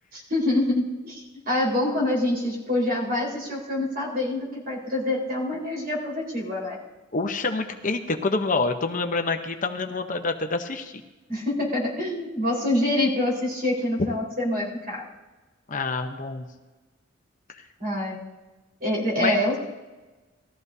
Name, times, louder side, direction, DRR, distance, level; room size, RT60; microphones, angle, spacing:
voice 1, 0.1-6.8 11.3-15.1 17.8-18.2 18.8-19.6, left 1 dB, 50° right, -3 dB, 4.4 m, -26 dB
voice 2, 7.1-11.0 15.7-16.4 19.2-19.4, left 3 dB, 40° left, 5 dB, 0.8 m, -27 dB
19.5 x 14.0 x 2.7 m, 1.2 s
head